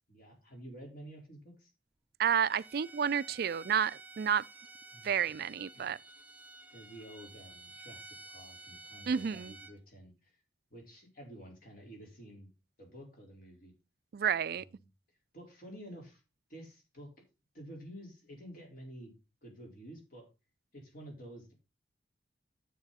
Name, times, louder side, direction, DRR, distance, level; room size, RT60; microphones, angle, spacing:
voice 1, 0.1-1.7 4.9-5.4 5.7-5.9 6.7-10.4 10.7-12.5 12.8-13.7 14.5-14.9 15.3-16.2 16.5-17.1 17.5-19.1 19.4-20.3 20.7-21.5, right 1 dB, 50° left, 4.3 m, -50 dB
voice 2, 2.2-4.4 5.0-6.0 9.1-9.5 14.1-14.6, right 7 dB, 55° right, 0.4 m, -30 dB
Bowed string instrument, 2.4-9.8, right 3 dB, 10° right, 0.7 m, -52 dB
9.7 x 7.6 x 4.1 m
head